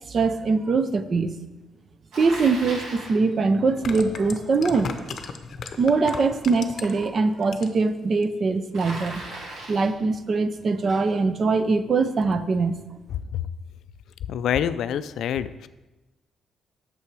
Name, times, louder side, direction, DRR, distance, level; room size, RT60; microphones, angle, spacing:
voice 1, 0.1-1.4 2.2-5.0 5.8-9.2 9.7-12.8, right 4 dB, 35° right, 11 dB, 0.5 m, -22 dB
Bicycle, 2.1-3.2 8.7-10.0, right 2 dB, 80° right, 2.3 m, -37 dB
sound 1, 2.7-2.8 3.6-7.1 7.4-7.9 8.2-8.3, left 5 dB, 50° left, 0.7 m, -35 dB
voice 2, 14.3-15.7, left 9 dB, 75° left, 14 dB, 0.3 m, -26 dB
8.6 x 6.8 x 4.7 m, 1.1 s
cardioid pair, 155°, 0 cm